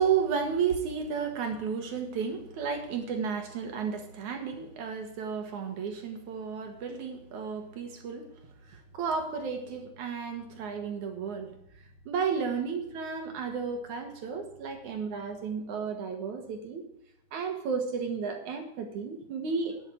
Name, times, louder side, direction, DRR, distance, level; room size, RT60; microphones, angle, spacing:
voice 1, 0.0-8.3 8.7-11.5 12.1-16.9 17.3-19.8, right 6 dB, 65° right, 5 dB, 2.0 m, -32 dB
10.5 x 8.6 x 6.2 m, 0.80 s
omnidirectional pair, 5.1 m